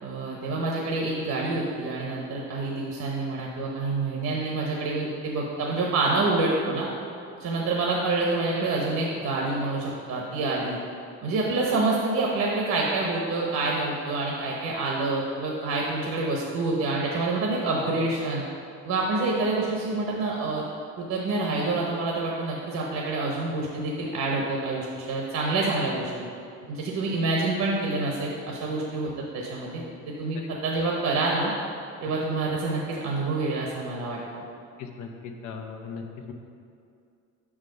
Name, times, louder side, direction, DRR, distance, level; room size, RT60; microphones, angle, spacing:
voice 1, 0.0-6.9 7.4-10.8 11.2-18.4 18.8-20.6 21.0-26.1 26.7-31.5 32.0-34.4, right 3 dB, 65° right, -2 dB, 1.0 m, -27 dB
voice 2, 34.8-36.3, left 5 dB, 80° left, 3 dB, 0.9 m, -38 dB
5.6 x 4.9 x 6.4 m, 2.5 s
cardioid pair, 125°, 30 cm